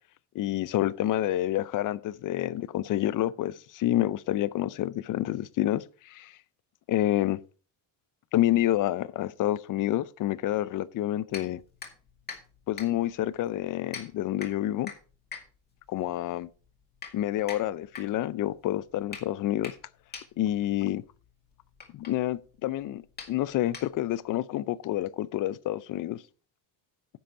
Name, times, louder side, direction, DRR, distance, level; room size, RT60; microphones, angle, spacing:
voice 1, 0.3-6.4 6.9-7.4 8.3-11.6 12.7-14.9 15.9-16.5 17.1-19.7 20.4-21.0 21.9-23.0 23.3-26.2, left 13 dB, 50° left, 0.5 m, -28 dB
sound 1, 11.3-24.3, left 5 dB, 20° left, 2.0 m, -46 dB
10.0 x 7.9 x 4.5 m
cardioid pair, 175°, 43 cm